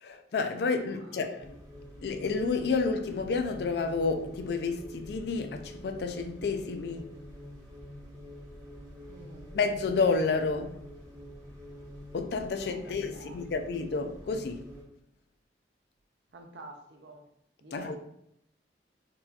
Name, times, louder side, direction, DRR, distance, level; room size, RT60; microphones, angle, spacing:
voice 1, 0.0-1.5 2.0-7.1 9.5-10.7 12.1-14.7 17.7-18.0, left 4 dB, 65° left, 0.4 m, -30 dB
voice 2, 0.8-1.4 9.1-9.5 12.5-13.4 16.3-17.2 17.6-18.0, right 2 dB, 75° right, 0.6 m, -49 dB
sound 1, 1.4-14.8, left 1 dB, 20° right, 1.1 m, -47 dB
3.8 x 2.4 x 2.8 m
head